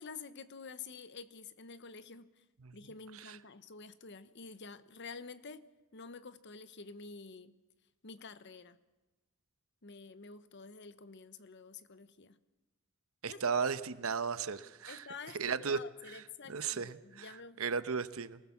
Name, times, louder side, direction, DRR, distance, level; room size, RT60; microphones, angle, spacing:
voice 1, 0.0-2.4 2.7-5.6 5.9-7.5 8.0-8.8 9.8-12.4 13.2-13.6 14.9-17.6, left 4 dB, 55° left, 13 dB, 1.0 m, -49 dB
voice 2, 13.2-15.1 15.3-15.8 16.1-16.2 16.5-18.4, right 5 dB, 75° right, 13 dB, 0.9 m, -35 dB
23.5 x 19.0 x 7.2 m, 1.1 s
head